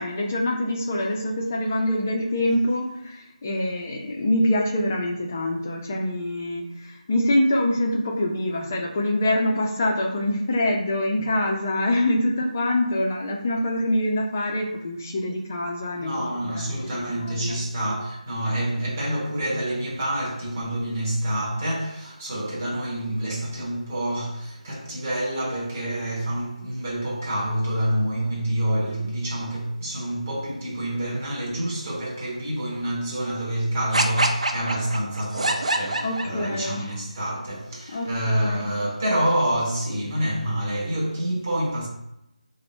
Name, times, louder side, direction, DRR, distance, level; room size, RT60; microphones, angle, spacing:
voice 1, 0.0-16.3 16.6-17.6 36.0-36.9 37.9-38.7, left 1 dB, 20° left, 0.4 m, -25 dB
voice 2, 16.0-41.9, right 1 dB, 20° right, 0.8 m, -27 dB
sound 1, 33.9-36.7, right 2 dB, 55° right, 0.5 m, -25 dB
3.3 x 2.1 x 4.1 m
figure-of-eight pair, 170°, 4 cm